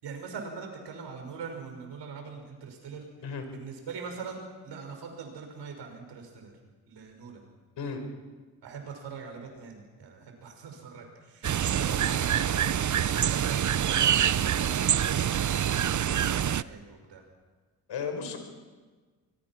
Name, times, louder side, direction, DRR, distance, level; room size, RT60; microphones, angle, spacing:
voice 1, 0.0-3.1 3.5-6.5 6.9-7.5 8.6-17.2, right 5 dB, 75° right, 3 dB, 5.9 m, -42 dB
sound 1, 11.4-16.6, right 9 dB, 45° right, 0.7 m, -26 dB
voice 2, 17.9-18.4, left 6 dB, 75° left, 6 dB, 4.9 m, -34 dB
25.5 x 21.5 x 6.0 m, 1.4 s
supercardioid pair, 60°, 42 cm